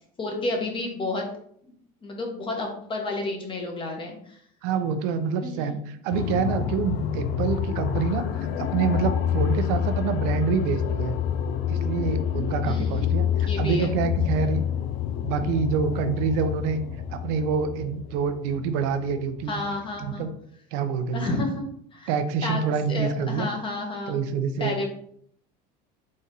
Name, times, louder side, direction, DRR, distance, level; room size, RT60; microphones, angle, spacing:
voice 1, 0.2-1.3 2.0-4.4 5.4-5.8 12.6-13.9 19.5-20.2 21.1-21.6 21.9-22.1 22.4-22.6 22.9-24.2 24.6-24.9, left 2 dB, 25° left, 1 dB, 1.0 m, -31 dB
voice 2, 4.6-8.3 8.6-11.2 11.7-14.6 15.2-16.8 17.1-19.6 20.0-20.3 20.7-21.4 22.1-23.5 24.1-24.9, right 6 dB, 80° right, 9 dB, 0.6 m, -26 dB
sound 1, 6.1-19.8, left 9 dB, 65° left, 0.4 m, -28 dB
4.2 x 2.6 x 3.7 m, 0.65 s
cardioid pair, 135°, 21 cm